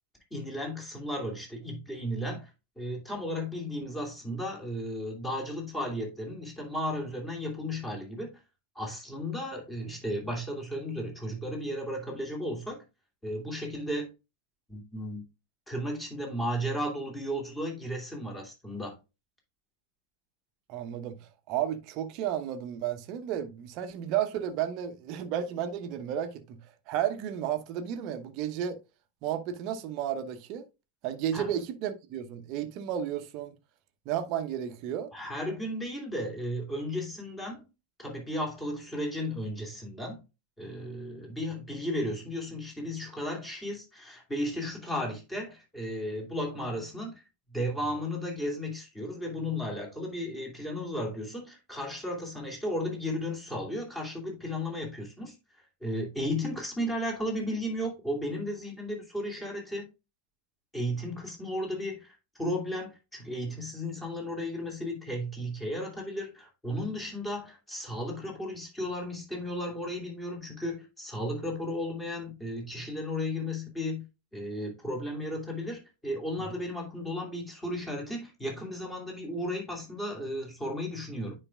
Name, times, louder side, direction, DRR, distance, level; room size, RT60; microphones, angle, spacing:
voice 1, 0.3-2.5 2.8-8.4 8.7-12.8 13.2-14.1 14.7-15.2 15.7-18.9 31.3-31.5 35.1-37.6 38.0-40.2 40.6-47.2 47.5-59.8 60.7-74.1 74.3-81.3, equal, 10° left, 2.8 m, -34 dB
voice 2, 20.7-28.8 29.2-30.6 31.0-33.5 34.0-35.1, right 10 dB, 40° right, 0.9 m, -33 dB
9.8 x 4.9 x 2.3 m
figure-of-eight pair, 90°, 0 cm